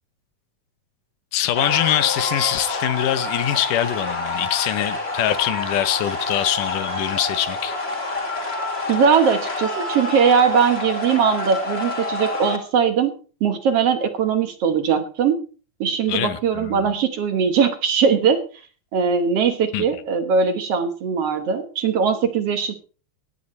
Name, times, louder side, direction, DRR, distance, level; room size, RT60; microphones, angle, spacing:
voice 1, 1.3-7.8 16.1-16.8 19.7-19.8, left 12 dB, 85° left, 2.5 m, -23 dB
sound 1, 1.5-12.6, left 2 dB, 20° left, 2.0 m, -27 dB
voice 2, 8.9-13.1 13.4-15.4 15.8-18.4 18.9-22.7, right 6 dB, 60° right, 2.0 m, -20 dB
16.5 x 9.7 x 4.3 m
omnidirectional pair, 3.6 m